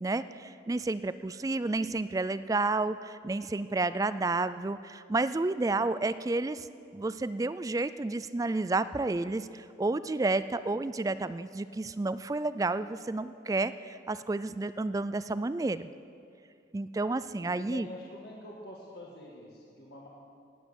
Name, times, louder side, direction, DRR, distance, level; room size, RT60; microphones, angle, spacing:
voice 1, 0.0-6.7 6.9-15.9 16.7-17.9, right 3 dB, 20° right, 14 dB, 0.3 m, -31 dB
voice 2, 17.5-20.1, left 1 dB, 60° left, -3 dB, 1.8 m, -46 dB
18.5 x 8.2 x 7.1 m, 2.4 s
head